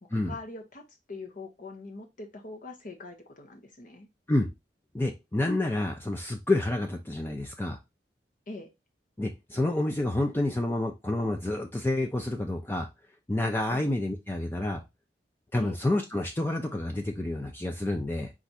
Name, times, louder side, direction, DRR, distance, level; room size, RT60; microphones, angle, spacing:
voice 1, 0.1-4.1 8.5-8.7 13.7-13.8 15.6-15.8, left 2 dB, 50° left, 4 dB, 0.8 m, -42 dB
voice 2, 4.9-7.8 9.2-12.9 13.3-14.8 15.5-18.3, left 1 dB, 15° left, 3 dB, 0.5 m, -29 dB
4.6 x 2.5 x 4.0 m, 0.22 s
head